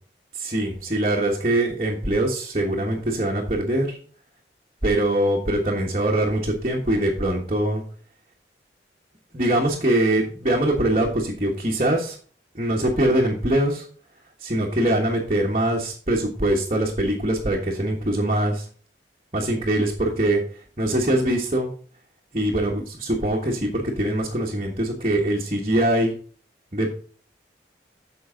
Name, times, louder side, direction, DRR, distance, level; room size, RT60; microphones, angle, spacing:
voice 1, 0.3-4.0 4.8-7.8 9.3-12.2 12.5-13.9 14.4-18.7 19.3-21.7 22.3-26.1 26.7-26.9, right 1 dB, 35° right, -2 dB, 1.4 m, -23 dB
9.4 x 6.4 x 3.9 m, 0.43 s
head